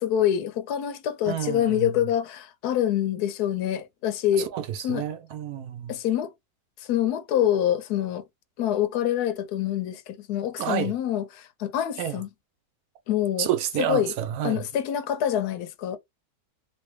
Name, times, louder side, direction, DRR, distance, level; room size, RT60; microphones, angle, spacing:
voice 1, 0.0-4.5 4.8-5.0 5.9-6.3 6.9-8.2 8.6-12.3 13.1-13.5 13.8-14.1 14.4-16.0, left 11 dB, 80° left, 1.1 m, -26 dB
voice 2, 1.3-1.9 4.5-5.9 10.6-10.9 12.0-12.2 13.4-14.6, right 10 dB, 75° right, 1.1 m, -29 dB
3.3 x 2.6 x 3.1 m
omnidirectional pair, 1.7 m